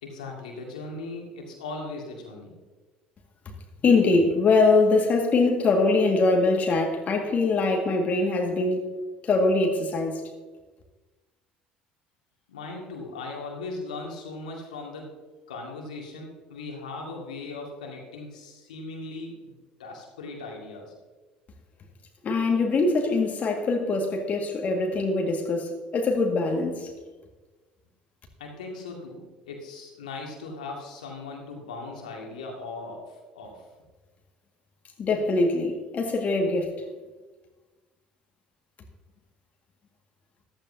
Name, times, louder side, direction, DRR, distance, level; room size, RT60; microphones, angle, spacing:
voice 1, 0.0-2.6 12.5-15.2 15.5-19.5 19.8-20.9 28.4-33.6, left 3 dB, 75° left, 0 dB, 2.3 m, -38 dB
voice 2, 3.8-9.0 9.2-10.2 22.2-26.9 35.0-36.7, left 3 dB, 35° left, 2 dB, 2.0 m, -23 dB
14.5 x 12.5 x 2.8 m, 1.3 s
figure-of-eight pair, 60°, 4 cm